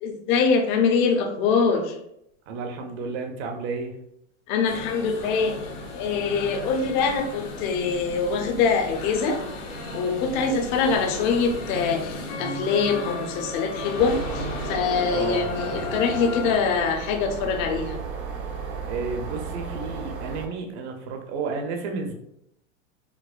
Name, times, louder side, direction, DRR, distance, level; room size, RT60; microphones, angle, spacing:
voice 1, 0.0-2.0 4.5-5.6 5.9-9.4 9.9-18.0, left 5 dB, 40° left, 3 dB, 0.5 m, -24 dB
voice 2, 2.5-4.0 15.1-15.5 18.9-22.1, right 4 dB, 60° right, 3 dB, 0.7 m, -31 dB
sound 1, 4.7-16.6, left 2 dB, 70° left, 1.4 m, -34 dB
sound 2, 14.0-20.5, right 5 dB, 85° right, 0.9 m, -34 dB
4.7 x 2.0 x 2.4 m, 0.78 s
supercardioid pair, 145°, 39 cm